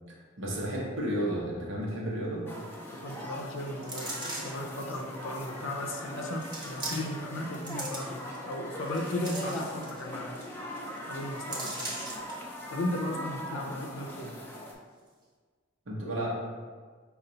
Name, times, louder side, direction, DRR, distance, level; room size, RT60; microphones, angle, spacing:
voice 1, 0.4-2.5 15.9-16.4, right 1 dB, 75° right, -4 dB, 0.9 m, -32 dB
sound 1, 2.5-14.7, equal, 10° left, 0.5 m, -40 dB
voice 2, 2.9-10.4 10.8-12.0 12.7-14.4, left 1 dB, 85° left, 1 dB, 0.5 m, -36 dB
sound 2, 3.8-4.7 5.4-5.5 6.4-7.3 7.5-8.4 8.8-10.0 10.4-10.5 10.8-11.0 11.5-12.3 12.8-12.9, right 2 dB, 20° right, 0.9 m, -39 dB
5.5 x 2.4 x 3.8 m, 1.5 s
head